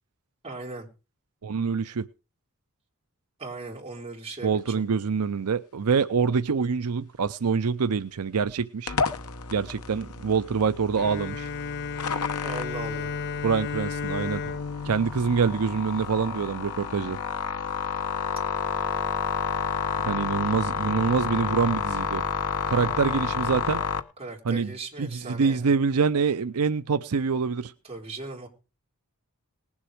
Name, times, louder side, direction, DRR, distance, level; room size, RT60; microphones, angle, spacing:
voice 1, 0.4-0.9 3.4-4.8 12.4-13.1 24.2-25.7 27.8-28.5, right 3 dB, 25° right, -1 dB, 3.9 m, -38 dB
voice 2, 1.4-2.0 4.4-9.0 9.5-11.5 13.4-14.6 14.8-17.2 20.1-22.2 22.7-23.8 24.4-24.7 25.0-27.7, right 5 dB, 85° right, 11 dB, 0.6 m, -25 dB
sound 1, 8.9-24.0, left 5 dB, 85° left, 1.1 m, -30 dB
Bowed string instrument, 11.0-16.5, left 5 dB, 50° left, 0.6 m, -34 dB
19.5 x 7.2 x 5.0 m, 0.32 s
head